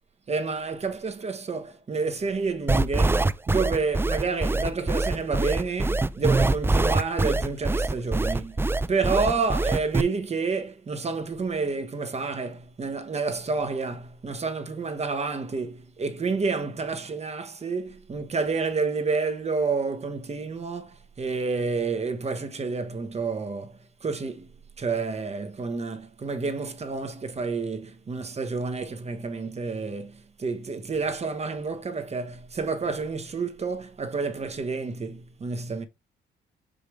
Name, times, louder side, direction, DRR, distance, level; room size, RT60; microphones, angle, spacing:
voice 1, 0.3-8.6 8.9-24.5 24.8-35.8, right 4 dB, 35° right, 1.2 m, -29 dB
sound 1, 2.7-10.0, right 2 dB, 10° right, 0.4 m, -23 dB
5.7 x 5.1 x 3.2 m
cardioid pair, 90°, 20 cm